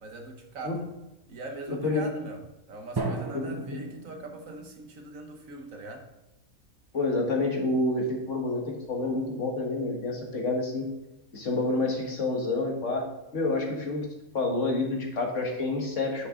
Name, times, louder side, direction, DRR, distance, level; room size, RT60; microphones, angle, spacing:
voice 1, 0.0-0.8 1.3-2.4 2.7-6.1, right 3 dB, 65° right, 3 dB, 1.6 m, -41 dB
voice 2, 1.7-2.0 3.3-3.8 6.9-10.9 11.3-13.0 13.3-14.1 14.3-16.3, left 2 dB, 55° left, 1 dB, 1.8 m, -28 dB
Drum, 3.0-4.9, right 3 dB, 25° right, 0.5 m, -35 dB
9.5 x 6.6 x 3.7 m, 0.95 s
omnidirectional pair, 1.5 m